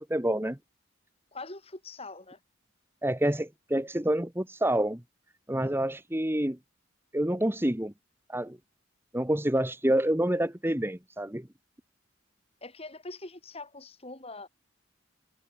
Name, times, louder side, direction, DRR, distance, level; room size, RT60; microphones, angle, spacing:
voice 1, 0.1-0.6 3.0-5.0 5.5-6.6 7.1-7.9 8.3-8.6 9.1-11.5, right 1 dB, 10° right, 1.4 m, -27 dB
voice 2, 1.3-2.4 12.6-14.5, left 2 dB, 30° left, 5.5 m, -43 dB
head